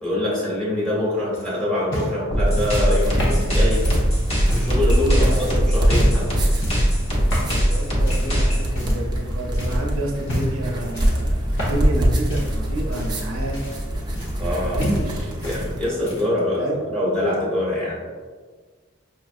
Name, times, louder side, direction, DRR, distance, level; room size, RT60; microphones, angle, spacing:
voice 1, 0.0-3.8 4.5-6.3 14.4-14.9 15.4-18.0, left 1 dB, 5° left, -7 dB, 1.2 m, -24 dB
sound 1, 1.3-4.8 5.2-5.5 5.9-6.3 6.6-6.9 7.3-7.6 8.1-8.4 8.8-9.3 9.6-9.8 10.2-10.6 10.9-12.0 12.3-14.6 14.8-15.6 15.9-16.4 17.3-17.4, equal, 60° left, 0.9 m, -29 dB
sound 2, 2.3-8.7, equal, 30° left, 0.8 m, -20 dB
sound 3, 2.5-15.9, equal, 20° right, 0.5 m, -25 dB
voice 2, 5.1-5.6 7.5-13.7 14.6-15.4 16.6-16.9, right 1 dB, 75° right, 0 dB, 0.6 m, -30 dB
5.5 x 2.5 x 2.5 m, 1.5 s
head